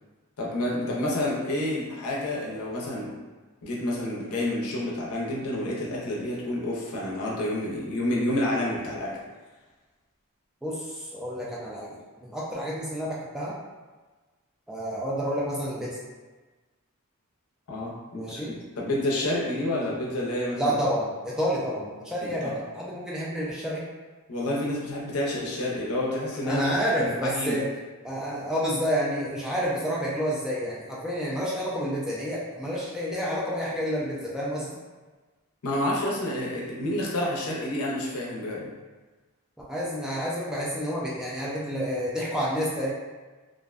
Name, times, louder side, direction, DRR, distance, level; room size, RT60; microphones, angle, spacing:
voice 1, 0.4-3.2 3.6-9.2 17.7-20.7 22.2-22.5 24.3-26.6 26.9-27.6 35.6-38.7, left 1 dB, 70° left, -4 dB, 0.6 m, -29 dB
voice 2, 10.6-13.6 14.7-16.0 18.1-18.5 20.5-23.8 26.4-27.7 28.0-34.8 39.7-42.9, equal, 5° right, -6 dB, 0.3 m, -29 dB
2.5 x 2.1 x 2.4 m, 1.3 s
head